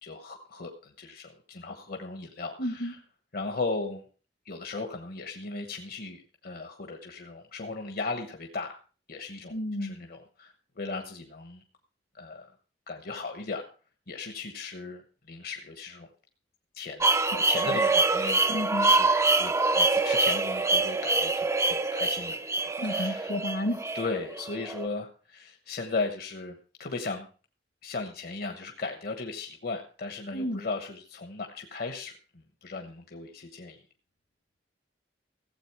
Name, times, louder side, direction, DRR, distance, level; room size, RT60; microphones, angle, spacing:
voice 1, 0.0-3.0 3.3-4.0 4.4-8.8 9.1-9.5 9.8-11.6 12.1-12.5 12.9-13.7 14.1-16.1 16.7-17.1 17.3-18.4 18.8-23.4 23.9-27.3 27.8-33.8, left 3 dB, 55° left, 4 dB, 1.1 m, -37 dB
voice 2, 2.6-2.9 9.5-10.0 17.7-17.8 18.5-18.9 22.8-23.8 30.3-30.6, left 1 dB, 75° left, 8 dB, 1.6 m, -31 dB
sound 1, 17.0-24.9, right 3 dB, 15° right, 0.5 m, -25 dB
15.5 x 7.8 x 4.7 m, 0.38 s
head